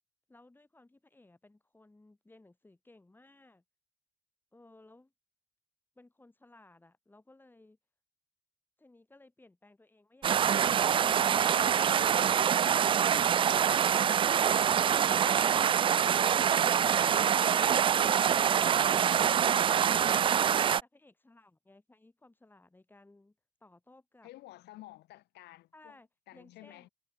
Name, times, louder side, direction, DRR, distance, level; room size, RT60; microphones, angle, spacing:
voice 1, 0.3-3.6 4.5-5.1 5.9-7.8 20.8-24.3 25.7-26.9, left 2 dB, 10° left, 5.1 m, -60 dB
sound 1, 10.2-20.8, right 8 dB, 30° right, 0.3 m, -25 dB
voice 2, 24.2-26.0 26.3-26.9, left 17 dB, 80° left, 3.3 m, -52 dB
cardioid pair, 110°, 17 cm